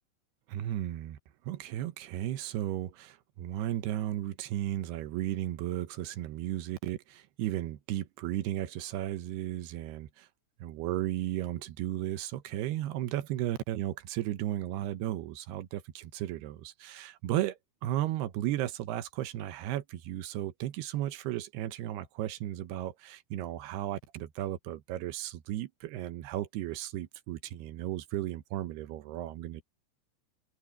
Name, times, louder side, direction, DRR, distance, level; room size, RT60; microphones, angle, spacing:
voice 1, 0.5-1.2 1.4-10.3 10.6-29.6, right 13 dB, 75° right, 2.5 m, -35 dB
omnidirectional pair, 5.8 m